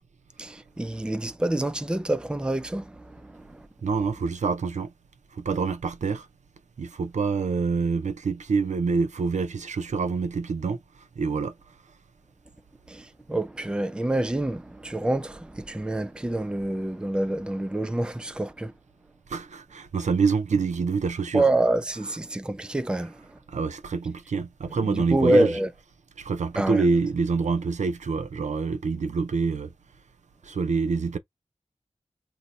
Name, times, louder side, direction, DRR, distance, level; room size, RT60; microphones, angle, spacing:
voice 1, 0.4-3.7 12.9-18.7 21.3-23.4 24.6-25.7 26.6-26.8, right 1 dB, 10° right, 0.4 m, -27 dB
voice 2, 3.8-4.9 5.3-6.3 6.8-10.8 11.2-11.5 19.3-21.5 23.5-25.5 26.2-29.7 30.4-31.2, right 4 dB, 80° right, 0.5 m, -26 dB
2.7 x 2.1 x 3.9 m
wide cardioid pair, 85°, 12 cm